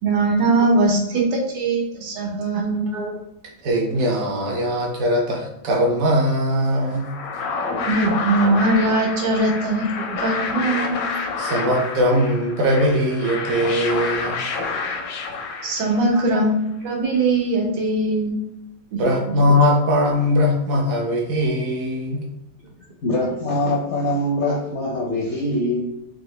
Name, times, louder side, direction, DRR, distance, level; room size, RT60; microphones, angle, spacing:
voice 1, 0.0-2.9 7.9-9.9 10.2-11.0 15.6-18.4, right 2 dB, 80° right, 0 dB, 1.5 m, -20 dB
voice 2, 2.5-3.2 3.6-7.1 10.1-10.2 10.7-10.8 11.4-14.4 19.0-22.2, equal, 65° right, 0 dB, 0.9 m, -21 dB
sound 1, 6.8-16.2, left 4 dB, 80° left, 1.3 m, -28 dB
voice 3, 23.0-25.8, left 1 dB, 65° left, -3 dB, 0.7 m, -23 dB
3.7 x 2.7 x 3.1 m, 0.87 s
omnidirectional pair, 1.9 m